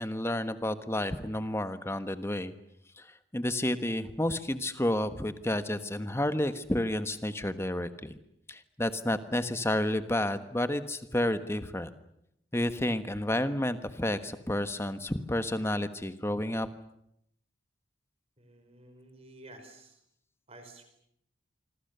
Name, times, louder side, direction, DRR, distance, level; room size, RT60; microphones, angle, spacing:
voice 1, 0.0-2.5 3.0-3.1 3.3-8.2 8.5-11.9 12.5-16.7, left 1 dB, 15° left, 11 dB, 1.3 m, -30 dB
voice 2, 18.4-20.0 20.5-20.8, right 2 dB, 30° right, 7 dB, 5.0 m, -52 dB
26.0 x 26.0 x 6.9 m, 0.75 s
head